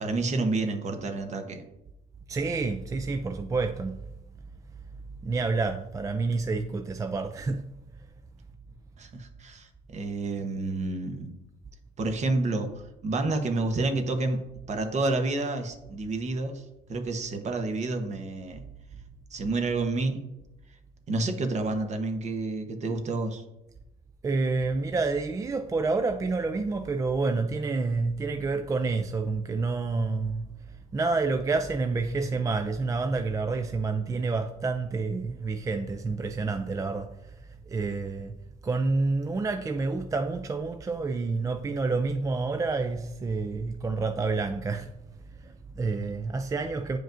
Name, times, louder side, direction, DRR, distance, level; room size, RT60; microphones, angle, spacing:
voice 1, 0.0-1.6 9.0-11.3 12.0-14.4 14.7-16.6 16.9-18.6 19.3-20.2 21.1-23.4, right 2 dB, 45° right, 0.9 m, -29 dB
voice 2, 2.3-4.0 5.2-7.7 24.2-30.5 30.9-38.4 38.6-44.9 45.3-47.0, right 3 dB, 20° right, 0.3 m, -28 dB
9.1 x 5.0 x 2.5 m
cardioid pair, 110°, 17 cm